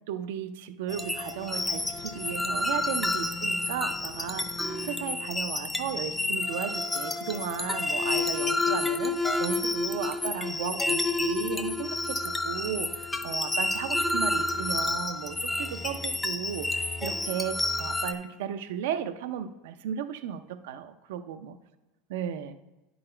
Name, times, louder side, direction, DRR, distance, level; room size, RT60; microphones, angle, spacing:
voice 1, 0.1-21.6 22.1-22.5, right 9 dB, 80° right, 10 dB, 0.5 m, -35 dB
sound 1, 0.9-18.1, left 2 dB, 10° left, 0.6 m, -30 dB
10.0 x 3.9 x 4.4 m, 1.0 s
supercardioid pair, 120°, 0 cm